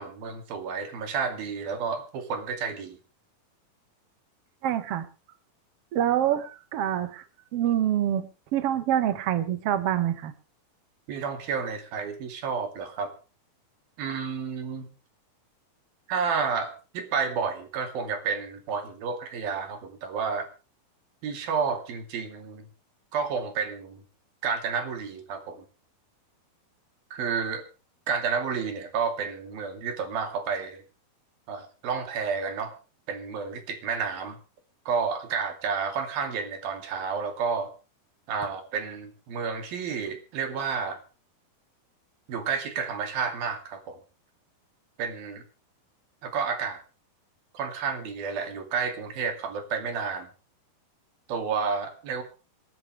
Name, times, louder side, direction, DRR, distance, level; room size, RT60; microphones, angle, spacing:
voice 1, 0.0-3.0 11.1-13.1 14.0-14.9 16.1-20.5 21.2-22.7 23.1-24.0 24.4-25.7 27.1-27.6 28.1-30.8 31.5-32.7 33.1-34.4 34.9-37.7 38.3-41.0 42.3-44.0 45.0-45.4 46.2-46.8 47.5-50.3 51.3-52.2, right 5 dB, 75° right, 7 dB, 4.3 m, -30 dB
voice 2, 4.6-5.1 5.9-7.2 7.5-8.3 8.5-10.3, right 11 dB, 60° right, 11 dB, 1.7 m, -26 dB
27.5 x 10.5 x 3.2 m, 0.33 s
omnidirectional pair, 4.2 m